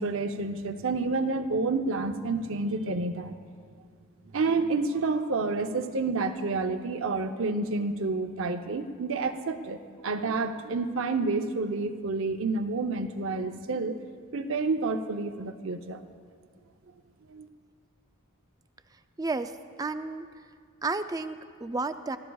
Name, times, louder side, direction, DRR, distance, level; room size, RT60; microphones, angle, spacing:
voice 1, 0.0-3.4 4.3-14.0 14.3-16.0 17.3-17.5, right 3 dB, 65° right, 7 dB, 0.7 m, -29 dB
voice 2, 19.2-20.3 20.8-22.2, right 3 dB, 15° right, 9 dB, 0.4 m, -32 dB
26.0 x 14.5 x 2.3 m, 2.1 s
head